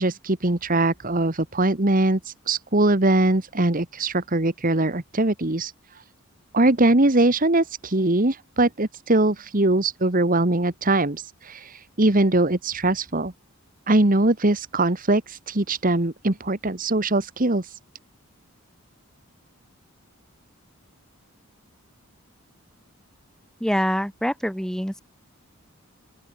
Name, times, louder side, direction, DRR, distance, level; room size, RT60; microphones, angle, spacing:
voice 1, 0.0-6.0 6.5-13.3 13.9-17.8, right 2 dB, 40° right, 1.5 m, -22 dB
voice 2, 23.6-25.0, equal, ahead, 6.2 m, -25 dB
open air
head